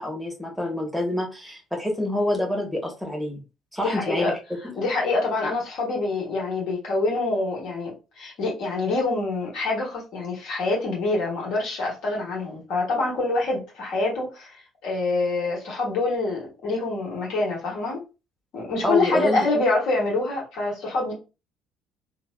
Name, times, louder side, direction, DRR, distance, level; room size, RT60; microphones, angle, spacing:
voice 1, 0.0-3.4 3.7-4.3 18.8-19.4, left 1 dB, ahead, 1.0 m, -27 dB
voice 2, 3.8-4.3 4.8-18.0 18.5-21.1, left 3 dB, 55° left, 1.2 m, -26 dB
3.1 x 2.1 x 2.3 m
figure-of-eight pair, 50°, 0 cm